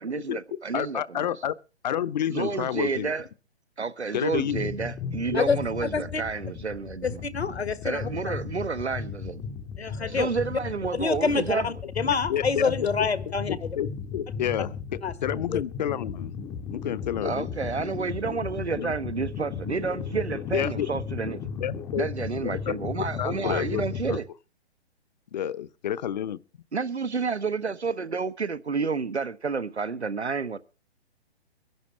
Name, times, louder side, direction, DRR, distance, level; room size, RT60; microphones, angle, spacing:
voice 1, 0.0-1.3 2.3-3.2 3.8-7.2 7.8-9.5 10.1-11.7 17.2-21.4 21.9-24.2 26.7-30.6, right 5 dB, 85° right, 1.2 m, -30 dB
voice 2, 0.7-1.5 1.8-3.1 4.1-4.7 5.3-5.5 11.3-11.4 12.0-13.1 13.5-16.3 16.7-17.5 18.8-18.9 20.5-20.9 21.6-22.1 22.4-22.7 23.2-23.8 24.1-24.2 25.3-26.4, left 10 dB, 40° left, 0.8 m, -30 dB
sound 1, 4.3-24.2, left 6 dB, 10° left, 0.7 m, -36 dB
voice 3, 5.3-6.2 7.0-8.4 9.8-10.3 11.0-13.7 15.0-15.1 15.5-15.6, left 5 dB, 75° left, 1.6 m, -27 dB
23.0 x 11.0 x 3.2 m
figure-of-eight pair, 130°, 33 cm